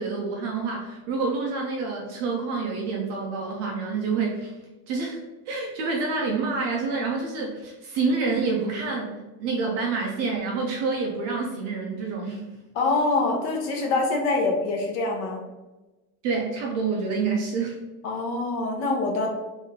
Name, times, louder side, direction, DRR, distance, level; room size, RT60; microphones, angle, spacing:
voice 1, 0.0-4.5 4.9-5.2 5.5-12.4 16.2-17.8, right 4 dB, 35° right, 0 dB, 0.4 m, -27 dB
voice 2, 12.7-15.4 18.0-19.3, left 3 dB, 55° left, 1 dB, 1.0 m, -25 dB
3.8 x 2.6 x 3.5 m, 1.1 s
cardioid pair, 175°, 49 cm